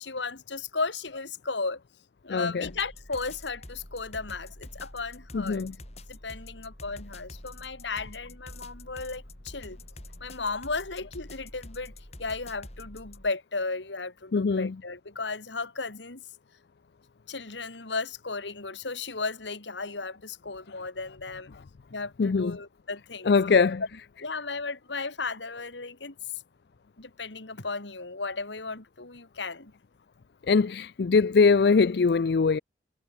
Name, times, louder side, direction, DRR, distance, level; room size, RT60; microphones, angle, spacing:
voice 1, 0.0-1.8 2.2-5.7 6.1-9.8 10.2-11.9 12.2-16.2 17.3-21.6 21.9-23.3 24.2-26.2 27.0-29.7, left 4 dB, 85° left, 2.5 m, -35 dB
voice 2, 2.3-2.7 5.3-5.7 14.3-14.7 22.2-22.5 23.3-23.8 30.5-32.6, left 4 dB, 60° left, 0.4 m, -22 dB
sound 1, 2.6-13.3, left 1 dB, 35° left, 3.3 m, -46 dB
head